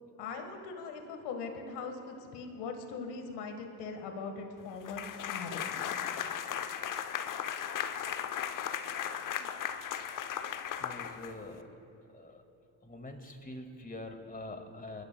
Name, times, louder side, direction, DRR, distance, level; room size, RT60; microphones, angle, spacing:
voice 1, 0.2-6.0, left 4 dB, 70° left, 5 dB, 1.6 m, -41 dB
sound 1, 4.8-11.6, left 9 dB, 45° left, 0.8 m, -36 dB
voice 2, 10.8-11.7 12.1-12.4 12.8-15.0, left 2 dB, 20° left, 5 dB, 2.1 m, -44 dB
27.5 x 13.0 x 2.3 m, 2.8 s
hypercardioid pair, 45°, 43 cm